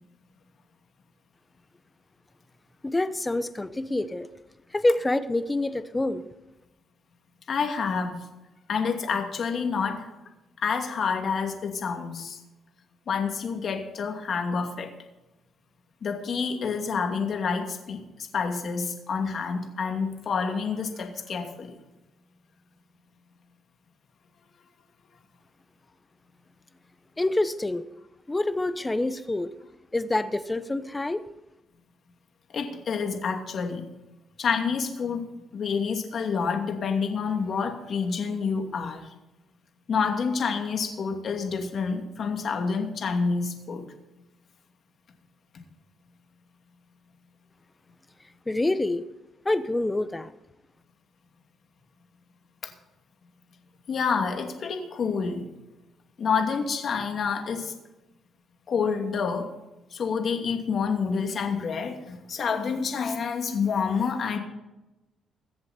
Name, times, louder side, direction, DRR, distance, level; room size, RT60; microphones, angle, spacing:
voice 1, 2.8-4.3 4.7-6.2 27.2-27.9 28.3-29.5 29.9-31.2 48.5-49.0 49.4-50.3, left 2 dB, 15° left, 13 dB, 0.9 m, -26 dB
voice 2, 7.5-8.2 8.7-10.1 10.6-12.4 13.1-14.9 16.0-18.0 18.3-21.7 32.5-33.9 34.4-39.1 39.9-43.9 52.6-52.7 53.9-55.5 56.2-57.7 58.7-59.5 59.9-64.4, left 5 dB, 55° left, 4 dB, 2.6 m, -28 dB
22.0 x 7.9 x 4.4 m, 0.98 s
cardioid pair, 90°, 0 cm